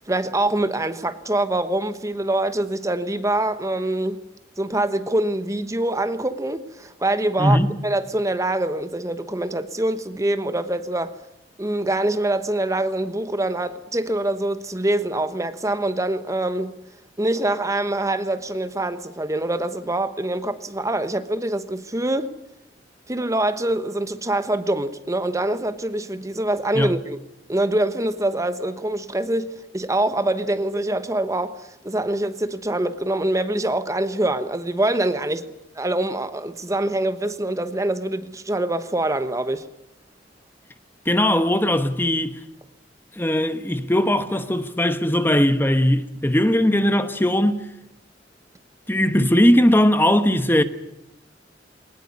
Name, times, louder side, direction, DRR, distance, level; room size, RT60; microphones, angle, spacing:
voice 1, 0.0-4.2 4.6-11.1 11.6-16.7 17.2-22.3 23.1-27.2 27.5-39.7, right 1 dB, 20° right, 1.2 m, -24 dB
voice 2, 7.4-7.7 26.7-26.9 41.0-42.4 43.1-47.7 48.9-50.6, left 1 dB, 10° left, 1.1 m, -19 dB
22.0 x 19.5 x 9.6 m
head